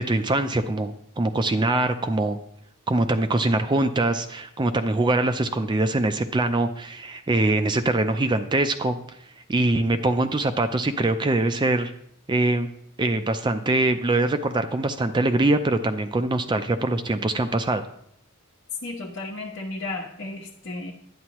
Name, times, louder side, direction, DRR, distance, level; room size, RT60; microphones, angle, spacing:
voice 1, 0.0-2.4 2.9-9.0 9.5-11.9 12.3-12.7 13.0-17.8, right 2 dB, 20° right, 9 dB, 0.4 m, -23 dB
voice 2, 18.8-20.9, left 2 dB, 60° left, -4 dB, 1.1 m, -34 dB
11.0 x 9.3 x 3.0 m, 0.70 s
head